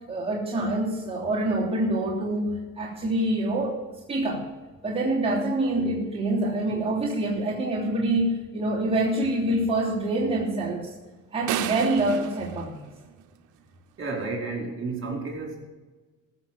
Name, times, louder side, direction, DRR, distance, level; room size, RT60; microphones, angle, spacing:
voice 1, 0.1-4.5 4.8-10.9 11.3-12.8, right 1 dB, 20° right, -7 dB, 3.1 m, -26 dB
sound 1, 11.5-13.6, right 13 dB, 90° right, 0.8 m, -33 dB
voice 2, 14.0-15.7, right 3 dB, 40° right, 0 dB, 4.5 m, -32 dB
15.0 x 6.8 x 7.4 m, 1.3 s
cardioid pair, 90°, 30 cm